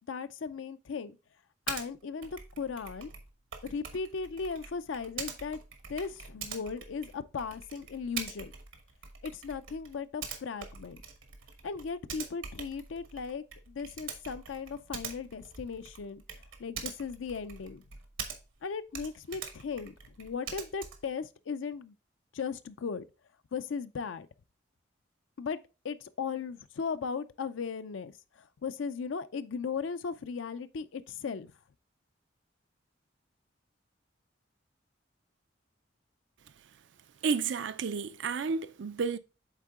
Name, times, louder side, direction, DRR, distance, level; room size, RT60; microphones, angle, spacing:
voice 1, 0.1-1.2 1.7-3.1 3.6-5.6 5.9-8.5 9.2-11.0 11.6-16.2 16.6-17.8 18.6-21.9 22.3-23.1 23.5-24.3 25.4-31.5, left 5 dB, 80° left, 0.5 m, -37 dB
Typing, 1.7-1.9 2.2-18.6 18.9-21.1, right 6 dB, 90° right, 1.2 m, -44 dB
voice 2, 37.2-39.2, right 5 dB, 70° right, 0.4 m, -31 dB
8.2 x 3.7 x 3.6 m
head